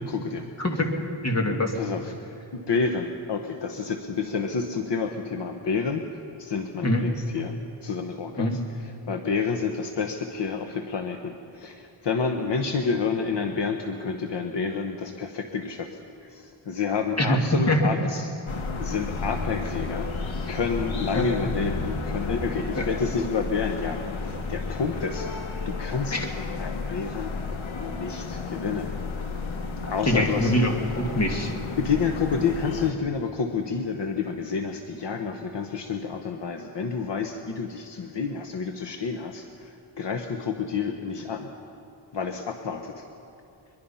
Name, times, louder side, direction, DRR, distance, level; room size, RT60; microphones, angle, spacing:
voice 1, 0.1-0.5 1.7-2.2 2.5-7.5 7.8-15.9 16.2-18.3 18.8-20.1 20.5-25.3 25.6-27.3 27.8-28.9 29.9-30.5 31.8-41.5 42.1-43.1, left 5 dB, 65° left, 5 dB, 1.2 m, -29 dB
voice 2, 0.6-0.9 1.2-1.7 6.8-7.0 8.4-8.6 17.2-17.4 17.7-17.8 21.1-21.3 22.7-22.9 26.1-26.3 29.8-31.5, left 1 dB, 35° left, 3 dB, 2.3 m, -24 dB
sound 1, 18.5-32.9, left 4 dB, 85° left, 1.7 m, -32 dB
22.5 x 22.0 x 5.7 m, 2.8 s
wide cardioid pair, 140°, 47 cm